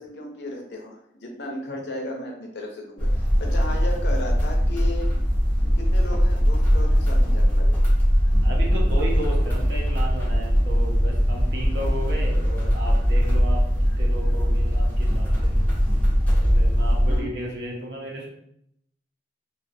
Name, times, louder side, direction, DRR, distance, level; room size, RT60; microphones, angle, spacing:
voice 1, 0.0-5.1 5.6-7.7 17.1-17.3, left 1 dB, 65° left, 1 dB, 0.6 m, -35 dB
sound 1, 3.0-17.2, equal, 10° left, 0.5 m, -20 dB
voice 2, 8.4-13.6 14.0-15.5 16.4-18.3, right 1 dB, 75° right, -2 dB, 0.7 m, -34 dB
2.5 x 2.3 x 2.6 m, 0.73 s
head